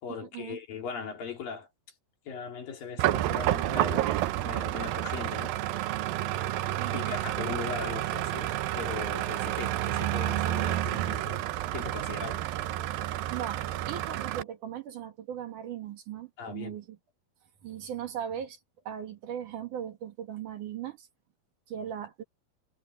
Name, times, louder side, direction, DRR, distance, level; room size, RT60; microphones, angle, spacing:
voice 1, 0.0-1.7 2.3-4.1 4.4-5.5 6.9-11.5 11.7-12.4 16.4-16.8, left 6 dB, 70° left, 5.1 m, -39 dB
sound 1, 3.0-14.4, right 14 dB, 80° right, 2.5 m, -30 dB
voice 2, 6.8-7.1 13.3-17.0 17.6-18.6 18.8-21.1 21.7-22.2, right 9 dB, 60° right, 3.2 m, -38 dB
omnidirectional pair, 4.3 m